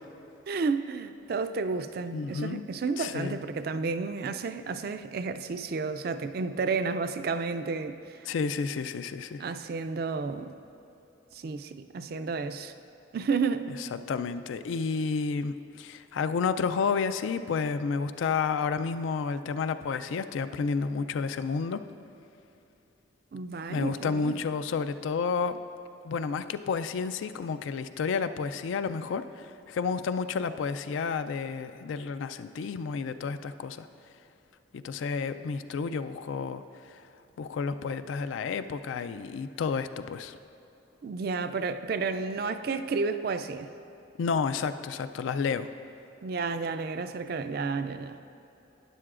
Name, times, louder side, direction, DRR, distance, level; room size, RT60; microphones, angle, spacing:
voice 1, 0.5-8.3 9.4-10.5 11.3-12.7 13.1-13.7 23.3-24.4 41.0-43.7 46.2-48.2, right 4 dB, 50° right, 10 dB, 0.3 m, -31 dB
voice 2, 2.1-2.6 3.0-3.4 8.3-9.4 14.1-21.8 23.7-25.6 26.0-33.9 34.7-36.6 37.4-40.4 44.2-45.7, left 5 dB, 75° left, 11 dB, 0.3 m, -31 dB
12.0 x 9.9 x 2.5 m, 2.9 s
head